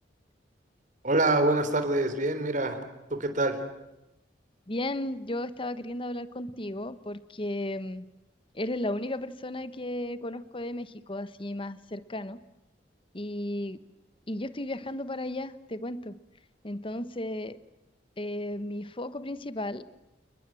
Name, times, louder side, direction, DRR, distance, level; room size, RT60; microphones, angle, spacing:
voice 1, 1.0-2.8 3.1-3.6, right 2 dB, 45° right, 8 dB, 3.8 m, -25 dB
voice 2, 4.7-8.1 8.5-12.4 13.1-13.8 14.3-16.2 16.6-17.6 18.2-19.9, left 1 dB, 30° left, 14 dB, 1.2 m, -34 dB
30.0 x 20.5 x 7.7 m, 0.93 s
head